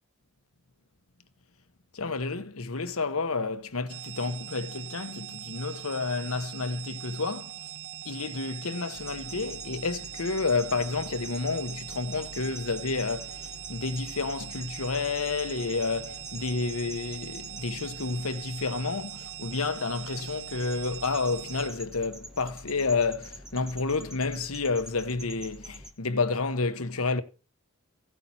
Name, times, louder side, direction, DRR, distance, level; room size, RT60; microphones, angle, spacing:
voice 1, 1.9-7.5 8.0-27.2, left 4 dB, 85° left, 1.1 m, -30 dB
sound 1, 3.9-21.7, right 13 dB, 80° right, 0.8 m, -42 dB
sound 2, 9.0-25.9, equal, 5° right, 1.2 m, -46 dB
16.0 x 8.8 x 4.2 m
head